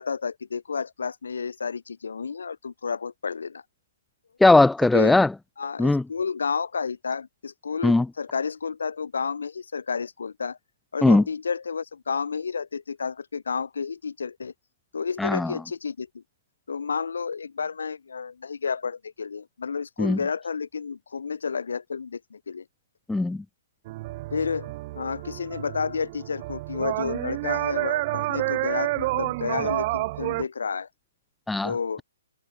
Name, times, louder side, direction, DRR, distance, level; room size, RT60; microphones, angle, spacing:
voice 1, 0.0-3.6 4.9-5.2 5.6-10.6 10.9-14.5 14.9-16.2 16.7-22.6 24.3-30.9 31.6-32.0, left 5 dB, 80° left, 5.0 m, -31 dB
voice 2, 4.4-5.3 5.8-6.0 7.8-8.1 11.0-11.2 15.2-15.5 20.0-20.2 23.1-23.4 31.5-31.7, left 2 dB, 5° left, 0.3 m, -18 dB
sound 1, 23.9-30.4, right 20 dB, 25° right, 3.2 m, -29 dB
hypercardioid pair, 170°, 0 cm